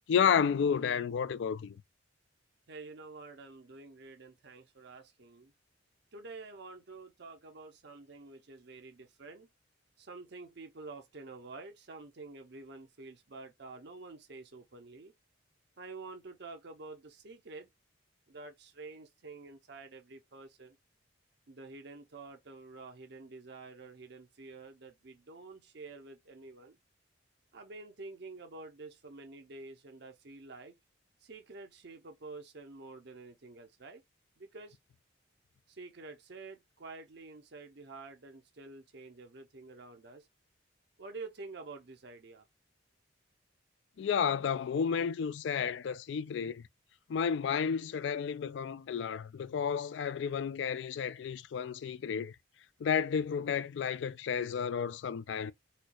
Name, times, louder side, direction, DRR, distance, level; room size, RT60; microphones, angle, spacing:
voice 1, 0.1-1.8 44.0-46.6 47.1-52.3 52.8-55.5, left 7 dB, 65° left, 0.3 m, -31 dB
voice 2, 2.7-5.5 6.1-9.5 10.0-15.1 15.8-17.7 18.3-20.8 21.5-26.8 27.5-30.8 31.2-34.0 34.4-34.8 35.7-40.3 41.0-42.4, right 3 dB, 60° right, 0.7 m, -49 dB
4.3 x 2.3 x 2.5 m
head